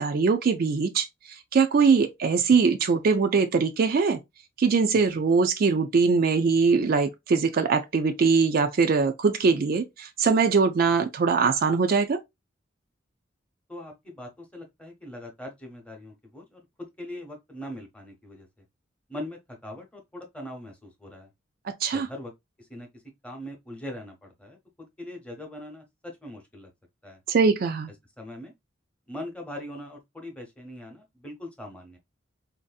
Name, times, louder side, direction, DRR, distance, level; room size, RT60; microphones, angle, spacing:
voice 1, 0.0-4.2 4.6-12.2 21.7-22.1 27.3-27.9, right 5 dB, 50° right, 0.4 m, -22 dB
voice 2, 13.7-16.6 17.0-18.5 19.1-21.3 21.9-22.3 22.6-26.7 27.0-27.2 28.2-28.5 29.1-32.0, left 1 dB, 5° left, 0.9 m, -41 dB
4.1 x 2.6 x 2.3 m
head